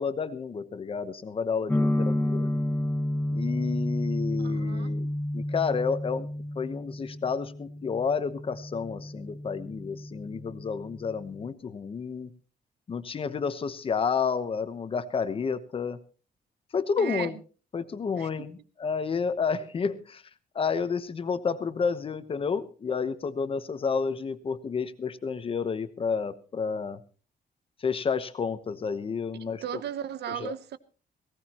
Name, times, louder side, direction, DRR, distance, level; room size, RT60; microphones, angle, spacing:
voice 1, 0.0-2.5 3.3-5.1 5.3-6.3 6.5-12.3 12.9-16.0 16.7-17.4 17.7-20.2 20.5-27.0 27.8-29.8 30.3-30.5, left 5 dB, 35° left, 1.0 m, -30 dB
sound 1, 1.7-11.5, left 1 dB, 10° left, 0.8 m, -31 dB
voice 2, 4.4-4.9 17.0-17.4 18.2-18.3 29.5-30.8, right 10 dB, 80° right, 1.0 m, -36 dB
18.5 x 17.5 x 3.0 m
wide cardioid pair, 170°, 17 cm